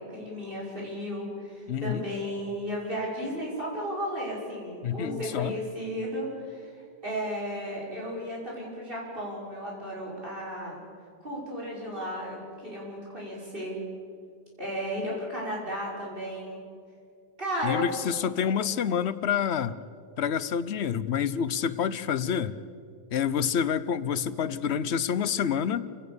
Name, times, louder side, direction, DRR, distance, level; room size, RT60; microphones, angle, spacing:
voice 1, 0.0-10.8 11.2-13.8 14.6-16.6 17.4-17.9 18.4-18.5, equal, 60° right, -5 dB, 6.2 m, -34 dB
voice 2, 1.7-2.0 4.8-5.6 17.6-19.8 20.2-22.6 23.1-25.9, left 8 dB, 90° left, 16 dB, 1.0 m, -28 dB
28.5 x 17.0 x 7.0 m, 2.3 s
omnidirectional pair, 1.1 m